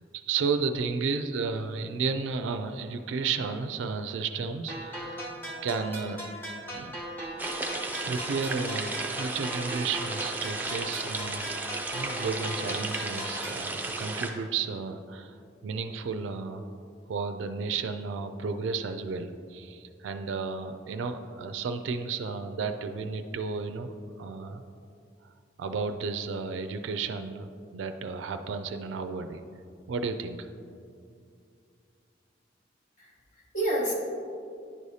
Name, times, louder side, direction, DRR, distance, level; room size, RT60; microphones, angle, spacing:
voice 1, 0.1-5.3 5.6-6.2 6.7-7.0 7.8-11.5 11.9-16.8 17.1-24.6 25.6-29.4 29.9-30.5, right 5 dB, 80° right, 8 dB, 0.3 m, -33 dB
sound 1, 4.7-13.7, equal, 10° left, 0.9 m, -39 dB
sound 2, 7.4-14.3, right 2 dB, 10° right, 0.4 m, -34 dB
voice 2, 33.0-33.9, right 1 dB, 40° left, -3 dB, 1.0 m, -30 dB
9.8 x 4.8 x 2.7 m, 2.4 s
head